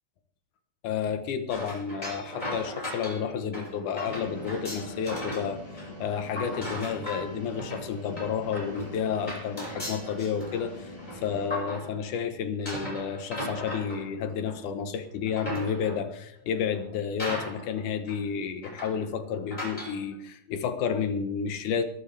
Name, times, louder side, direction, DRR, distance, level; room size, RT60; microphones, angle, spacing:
voice 1, 0.8-21.8, left 7 dB, 85° left, 9 dB, 2.7 m, -31 dB
sound 1, 1.5-5.5 5.8-12.2 12.6-14.7 15.1-16.1 16.7-16.8 17.2-17.8 18.1-18.2 18.6-19.1 19.5-20.0, equal, 15° left, 5.8 m, -37 dB
sound 2, 4.1-11.5, equal, 35° left, 6.2 m, -42 dB
21.5 x 13.0 x 3.4 m, 0.74 s
omnidirectional pair, 3.4 m